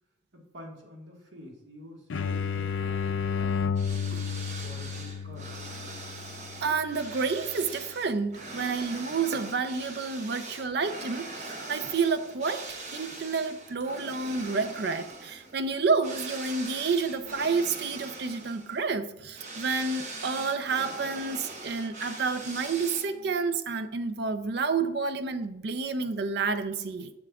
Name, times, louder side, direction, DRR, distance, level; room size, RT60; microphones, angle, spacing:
voice 1, 0.3-3.9 4.5-5.7, left 1 dB, 75° right, 1.6 m, -48 dB
sound 1, 2.1-7.6, left 6 dB, 75° left, 0.4 m, -32 dB
sound 2, 3.7-23.3, right 2 dB, 40° right, 0.9 m, -42 dB
voice 2, 6.6-27.1, right 4 dB, 55° right, 0.5 m, -29 dB
7.6 x 7.1 x 2.3 m
head